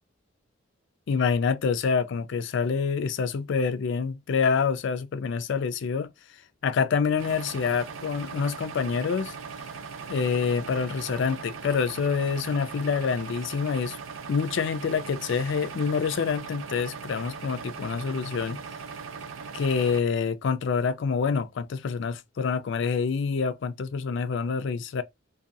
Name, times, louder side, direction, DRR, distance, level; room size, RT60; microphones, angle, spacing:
voice 1, 1.1-6.1 6.6-9.3 10.1-14.0 14.3-18.6 19.5-25.0, left 5 dB, 60° left, 0.4 m, -27 dB
sound 1, 7.2-20.0, right 5 dB, 75° right, 0.5 m, -39 dB
2.6 x 2.3 x 2.5 m
head